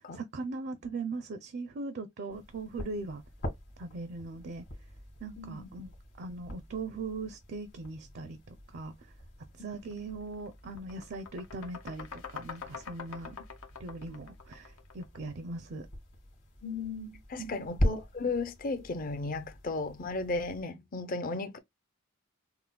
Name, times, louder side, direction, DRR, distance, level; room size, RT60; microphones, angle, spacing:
voice 1, 0.1-3.2 3.8-4.6 5.2-5.9 6.2-8.9 9.5-13.4 13.8-15.9 17.4-17.6, right 3 dB, 55° right, 0.5 m, -40 dB
sound 1, 2.3-20.6, equal, 60° left, 1.8 m, -41 dB
voice 2, 5.4-5.7 16.6-21.6, left 3 dB, 40° left, 0.5 m, -35 dB
sound 2, 9.8-10.0 10.3-15.3, left 6 dB, 85° left, 0.9 m, -45 dB
5.6 x 2.0 x 2.2 m
head